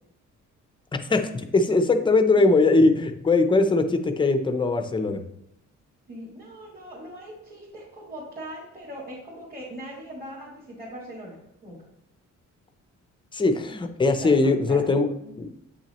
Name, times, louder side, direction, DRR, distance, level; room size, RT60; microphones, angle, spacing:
voice 1, 1.1-5.2 13.3-15.1 15.4-15.5, left 3 dB, 15° left, 7 dB, 0.5 m, -21 dB
voice 2, 6.1-11.8 14.2-14.3 14.7-15.4, right 1 dB, 30° right, -7 dB, 1.9 m, -40 dB
8.1 x 5.9 x 2.9 m, 0.82 s
cardioid pair, 160°, 31 cm